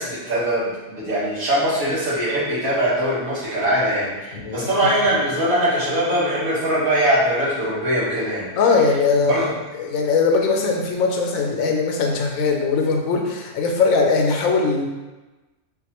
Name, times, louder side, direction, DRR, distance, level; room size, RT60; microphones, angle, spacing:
voice 1, 0.0-8.4 9.3-9.5, right 1 dB, 85° right, -9 dB, 1.7 m, -21 dB
voice 2, 4.3-4.9 8.6-9.5 9.8-14.9, left 4 dB, 85° left, 2 dB, 1.0 m, -20 dB
3.9 x 2.5 x 2.9 m, 1.2 s
omnidirectional pair, 1.4 m